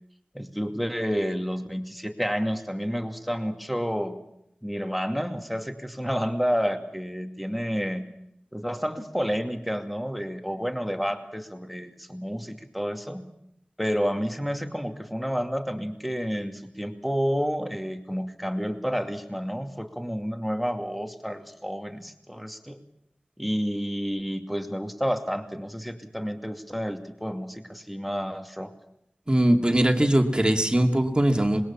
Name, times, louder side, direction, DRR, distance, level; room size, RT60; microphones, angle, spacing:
voice 1, 0.3-4.2 4.6-8.0 8.5-13.2 13.8-22.8 23.4-28.7, equal, ahead, 5 dB, 2.5 m, -30 dB
voice 2, 29.3-31.6, right 1 dB, 25° right, 3 dB, 2.5 m, -21 dB
26.5 x 21.0 x 7.3 m, 0.76 s
wide cardioid pair, 50°, 3 cm